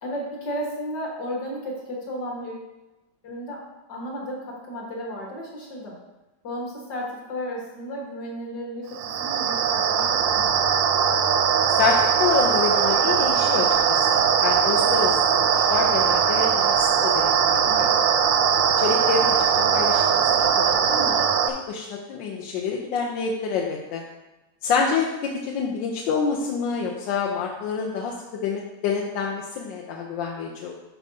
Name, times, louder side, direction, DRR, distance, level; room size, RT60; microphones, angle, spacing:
voice 1, 0.0-2.7 3.2-3.6 3.9-6.0 6.4-10.5 17.6-17.9, equal, 65° left, -3 dB, 2.1 m, -33 dB
sound 1, 8.9-21.5, right 7 dB, 80° right, 1.2 m, -20 dB
voice 2, 11.8-17.9 18.8-20.3 20.6-21.2 21.7-24.0 24.6-28.1 28.4-30.7, left 5 dB, 85° left, -1 dB, 1.4 m, -27 dB
10.5 x 4.6 x 2.7 m, 1.0 s
omnidirectional pair, 2.0 m